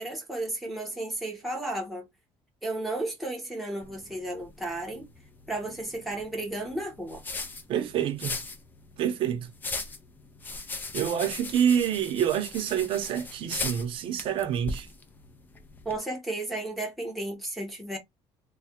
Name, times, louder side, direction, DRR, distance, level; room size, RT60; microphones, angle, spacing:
voice 1, 0.0-2.1 2.6-5.1 5.5-7.2 15.8-18.0, right 2 dB, ahead, 1.0 m, -33 dB
sound 1, 3.8-16.0, left 3 dB, 15° left, 0.4 m, -39 dB
voice 2, 7.7-8.4 9.0-9.5 10.9-14.9, right 9 dB, 55° right, 0.7 m, -27 dB
3.2 x 2.2 x 2.9 m
cardioid pair, 175°, 11 cm